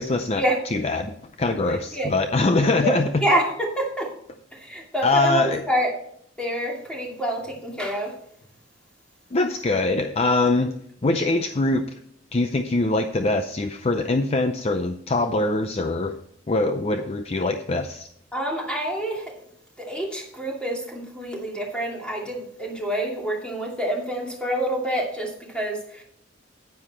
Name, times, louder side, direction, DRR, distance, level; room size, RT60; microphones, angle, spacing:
voice 1, 0.0-0.4 0.7-3.2 5.0-5.6 9.3-11.9 12.3-16.1 16.5-18.1, left 2 dB, 30° left, 8 dB, 0.5 m, -23 dB
voice 2, 1.7-2.2 2.8-2.9 3.2-4.1 4.5-6.0 6.4-8.1 18.3-19.3 19.8-26.0, right 1 dB, 5° left, -2 dB, 2.6 m, -27 dB
10.0 x 9.4 x 4.3 m, 0.68 s
head